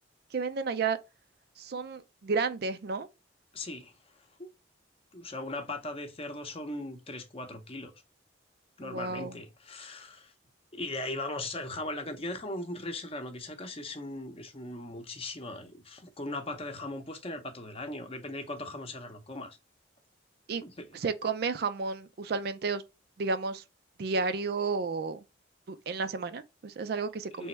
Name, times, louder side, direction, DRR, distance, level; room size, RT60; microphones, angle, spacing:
voice 1, 0.3-1.0 1.6-3.1 8.8-9.4 20.5-20.6 20.9-22.8 23.2-23.6 24.0-25.2 25.7-27.5, right 4 dB, 55° right, 0.4 m, -32 dB
voice 2, 3.5-4.5 5.1-7.9 8.8-10.3 10.7-19.6 20.6-21.0 27.4-27.5, left 2 dB, 30° left, 0.7 m, -39 dB
3.4 x 3.0 x 4.3 m
head